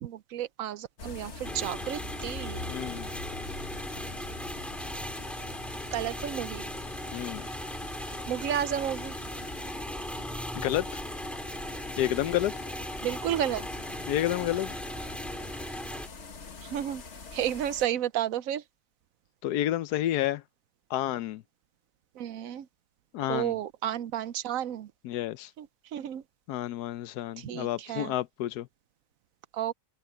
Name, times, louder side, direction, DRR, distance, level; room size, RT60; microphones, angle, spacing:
voice 1, 0.0-2.7 5.9-6.6 8.3-9.2 13.0-13.6 16.6-17.0 17.3-18.6 22.2-22.7 23.3-24.9 25.6-25.7 25.9-26.2 27.4-28.1 29.5-29.7, right 11 dB, 65° right, 1.0 m, -32 dB
sound 1, 1.0-17.9, left 4 dB, 45° left, 1.7 m, -44 dB
sound 2, 1.4-16.1, equal, ahead, 2.9 m, -38 dB
voice 2, 2.7-3.1 7.1-7.5 10.6-11.0 12.0-12.6 14.1-14.8 19.4-20.4 20.9-21.4 23.1-23.6 25.0-25.5 26.5-28.7, left 13 dB, 80° left, 1.2 m, -30 dB
open air
omnidirectional pair, 1.7 m